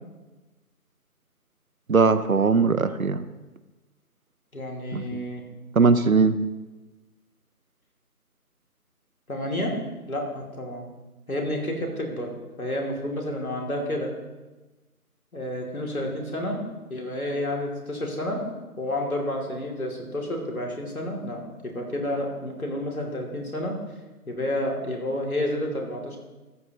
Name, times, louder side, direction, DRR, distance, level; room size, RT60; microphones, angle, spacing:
voice 1, 1.9-3.2 4.9-5.2 5.8-6.4, right 4 dB, 65° right, 13 dB, 0.7 m, -20 dB
voice 2, 4.5-5.4 9.3-9.7 10.0-10.9 11.3-12.3 12.6-14.1 15.3-16.6 16.9-18.5 18.8-23.8 24.3-26.2, left 1 dB, 65° left, 0 dB, 2.8 m, -30 dB
14.0 x 10.0 x 2.9 m, 1.2 s
figure-of-eight pair, 175°, 46 cm